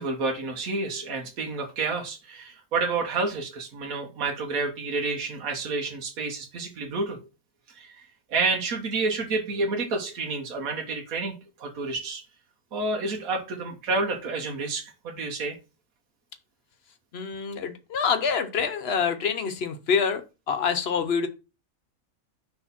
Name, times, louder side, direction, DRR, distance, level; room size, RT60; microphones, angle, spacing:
voice 1, 0.0-7.3 7.7-12.2 12.7-15.6, right 3 dB, 80° right, 2 dB, 1.5 m, -29 dB
voice 2, 17.1-21.3, left 6 dB, 55° left, 9 dB, 0.9 m, -26 dB
6.0 x 3.4 x 5.7 m, 0.29 s
omnidirectional pair, 1.5 m